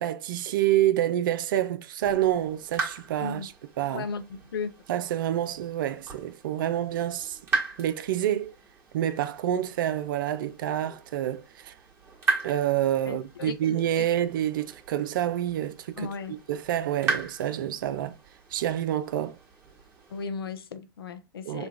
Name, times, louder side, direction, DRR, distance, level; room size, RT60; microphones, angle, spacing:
voice 1, 0.0-3.5 3.8-4.0 4.9-7.4 7.8-8.5 8.9-11.7 12.4-16.1 16.5-18.2 18.5-19.4 21.4-21.7, right 12 dB, 60° right, 0.4 m, -27 dB
sound 1, 2.0-20.2, right 3 dB, 20° right, 1.4 m, -37 dB
voice 2, 3.9-4.8 13.1-14.0 16.0-16.4 20.1-21.7, left 5 dB, 75° left, 0.5 m, -36 dB
3.1 x 2.2 x 2.5 m
figure-of-eight pair, 100°, 12 cm